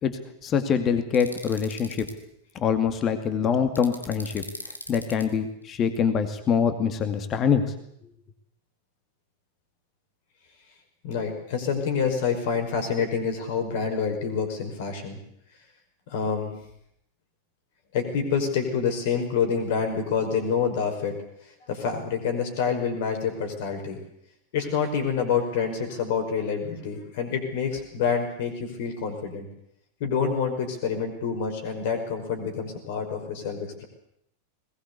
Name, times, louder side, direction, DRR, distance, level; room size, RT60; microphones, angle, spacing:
voice 1, 0.4-2.1 2.5-4.4 4.9-7.6, left 7 dB, 30° left, 8 dB, 2.4 m, -24 dB
sound 1, 1.1-2.1 3.7-5.2, left 1 dB, 85° left, 2.3 m, -39 dB
voice 2, 11.0-15.2 16.1-16.6 17.9-21.2 21.7-24.0 24.5-29.5 30.0-33.8, left 6 dB, 50° left, 6 dB, 5.4 m, -27 dB
21.0 x 19.5 x 8.4 m, 0.74 s
figure-of-eight pair, 90°, 0 cm